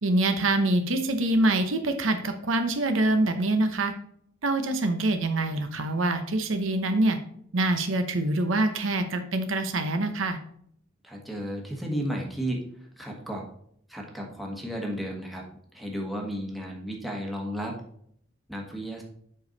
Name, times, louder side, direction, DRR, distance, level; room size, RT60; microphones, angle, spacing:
voice 1, 0.0-3.9 4.4-7.2 7.5-10.4, right 2 dB, 65° right, 7 dB, 0.8 m, -25 dB
voice 2, 11.0-13.5 13.9-15.5 15.7-17.8 18.5-19.0, equal, ahead, -1 dB, 1.3 m, -33 dB
7.8 x 5.2 x 4.0 m, 0.67 s
head